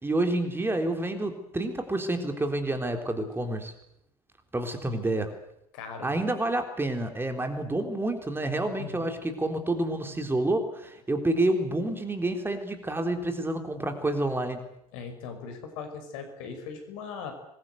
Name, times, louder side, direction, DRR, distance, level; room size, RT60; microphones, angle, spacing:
voice 1, 0.0-3.7 4.5-5.3 6.0-14.6, right 2 dB, 10° right, 6 dB, 3.6 m, -28 dB
voice 2, 4.9-5.2 5.7-6.2 8.8-9.1 14.9-17.3, left 5 dB, 55° left, 6 dB, 5.8 m, -39 dB
26.5 x 21.5 x 8.0 m, 0.76 s
figure-of-eight pair, 75°, 19 cm